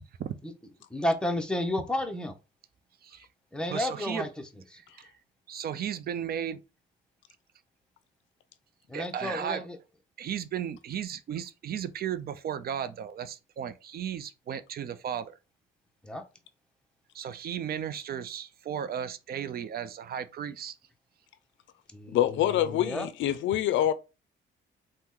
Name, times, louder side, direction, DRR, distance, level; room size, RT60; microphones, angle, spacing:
voice 1, 0.9-2.4 3.5-4.3 8.9-9.8 16.0-16.2 21.9-23.1, left 1 dB, 5° left, 0.6 m, -31 dB
voice 2, 3.7-4.3 5.0-5.1 5.5-6.6 8.9-9.7 10.2-15.3 17.1-20.7, right 9 dB, 50° right, 0.4 m, -35 dB
voice 3, 22.1-23.9, left 12 dB, 70° left, 0.4 m, -25 dB
2.9 x 2.1 x 3.6 m
cardioid pair, 90°, 20 cm